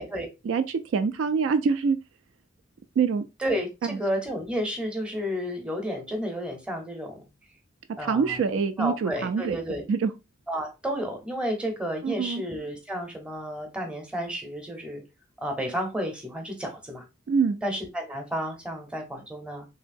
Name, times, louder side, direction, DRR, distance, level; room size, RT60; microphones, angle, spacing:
voice 1, 0.4-2.0 3.0-3.2 3.8-4.0 8.1-9.6 9.9-10.1 12.0-12.4 17.3-17.6, right 5 dB, 70° right, 0.3 m, -25 dB
voice 2, 3.4-7.2 8.0-8.4 8.8-9.8 10.5-15.0 15.4-17.0 17.6-19.7, equal, 5° right, 0.7 m, -31 dB
2.9 x 2.7 x 2.5 m
head